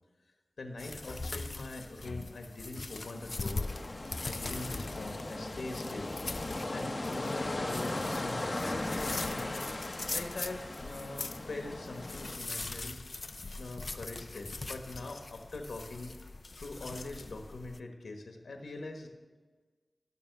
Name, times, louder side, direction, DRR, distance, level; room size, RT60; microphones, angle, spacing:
voice 1, 0.6-3.7 4.2-6.1 6.7-9.5 10.1-13.0 13.6-16.2 16.6-19.1, left 2 dB, 90° left, 3 dB, 1.3 m, -43 dB
sound 1, 0.8-17.8, left 3 dB, 60° left, 0.5 m, -42 dB
sound 2, 3.0-12.4, left 2 dB, 45° left, 1.4 m, -38 dB
12.0 x 7.1 x 6.6 m, 1.3 s
cardioid pair, 40°, 0 cm